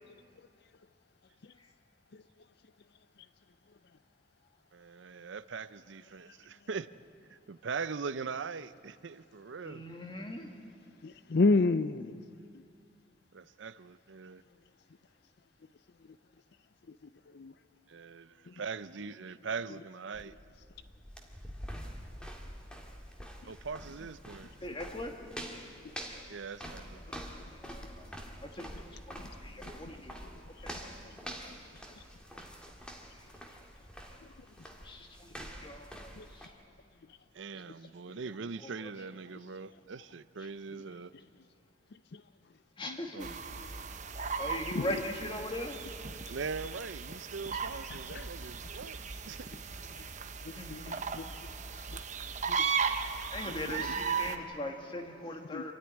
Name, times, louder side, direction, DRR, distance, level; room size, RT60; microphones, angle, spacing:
voice 1, 4.7-6.9 7.3-9.8 13.3-14.4 17.9-20.3 23.4-24.5 26.3-27.0 37.3-41.1 43.1-43.4 46.3-49.0 49.3-49.5 53.7-53.9, right 5 dB, 70° right, 15 dB, 0.6 m, -41 dB
voice 2, 9.7-10.5 24.6-25.1 27.1-28.1 28.4-30.2 30.6-30.8 34.8-35.3 35.6-36.5 38.6-38.9 42.8-43.3 44.4-45.8 50.5-51.0 53.3-55.7, left 1 dB, 25° left, 3 dB, 2.0 m, -40 dB
voice 3, 11.0-12.2 17.3-17.5 36.2-36.3 42.1-42.2 42.9-43.0 44.8-44.9 50.4-51.3 51.9-52.0 52.5-52.7 53.5-53.6 55.5-55.7, left 3 dB, 55° left, 13 dB, 0.5 m, -30 dB
sound 1, 20.1-36.5, equal, 5° left, 1.9 m, -46 dB
sound 2, 43.2-54.4, right 5 dB, 40° right, 1.0 m, -37 dB
26.5 x 13.5 x 9.8 m, 2.3 s
head